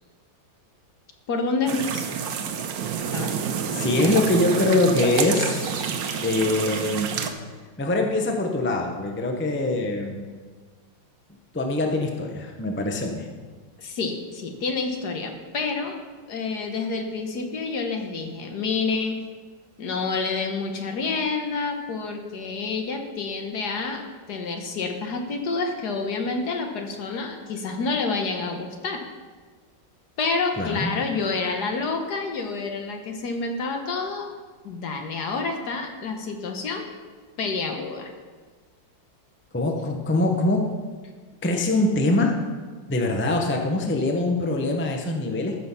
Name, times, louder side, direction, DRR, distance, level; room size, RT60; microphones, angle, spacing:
voice 1, 1.3-2.1 3.1-3.5 13.8-16.0 16.3-19.2 19.8-24.0 24.3-29.0 30.2-34.3 34.6-36.8 37.4-38.1, left 4 dB, 65° left, 4 dB, 1.6 m, -28 dB
sound 1, 1.7-7.3, right 7 dB, 90° right, 1.5 m, -28 dB
voice 2, 3.7-5.8 6.2-7.1 7.8-10.3 11.5-13.3 30.6-30.9 39.5-40.6 41.4-42.3 42.9-45.5, left 2 dB, 10° left, 2 dB, 0.6 m, -23 dB
14.5 x 6.2 x 5.7 m, 1.4 s
omnidirectional pair, 2.0 m